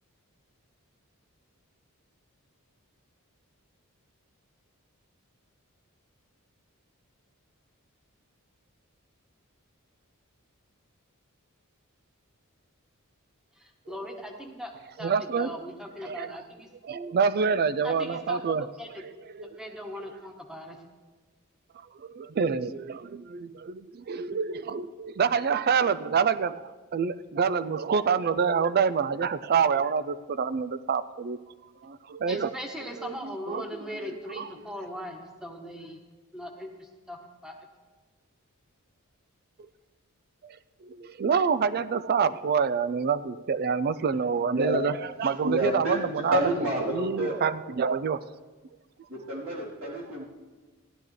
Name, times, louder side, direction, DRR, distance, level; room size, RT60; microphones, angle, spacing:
voice 1, 13.6-14.7 15.0-16.7 17.8-19.0 19.4-20.8 32.3-36.0 36.3-37.6, equal, 5° right, 2 dB, 1.3 m, -40 dB
voice 2, 15.0-15.6 16.0-16.4 16.8-18.7 19.3-19.6 22.0-31.4 31.8-32.5 33.0-34.5 40.4-40.6 40.8-44.9 45.2-46.4 46.9-48.2 49.8-49.9, right 6 dB, 45° right, 14 dB, 0.4 m, -27 dB
voice 3, 44.5-44.8 45.2-47.4 49.1-50.2, right 1 dB, 70° right, -5 dB, 3.5 m, -30 dB
16.0 x 12.0 x 3.3 m, 1.3 s
head